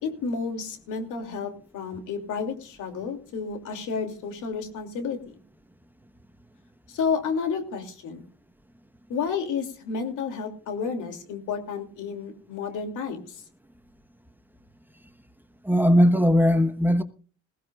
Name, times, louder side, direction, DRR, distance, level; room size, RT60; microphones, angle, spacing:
voice 1, 0.0-5.2 6.9-8.2 9.1-13.4, left 5 dB, 85° left, 2.8 m, -31 dB
voice 2, 15.6-17.0, equal, 5° right, 1.1 m, -19 dB
20.5 x 16.5 x 2.4 m
cardioid pair, 90°, 30 cm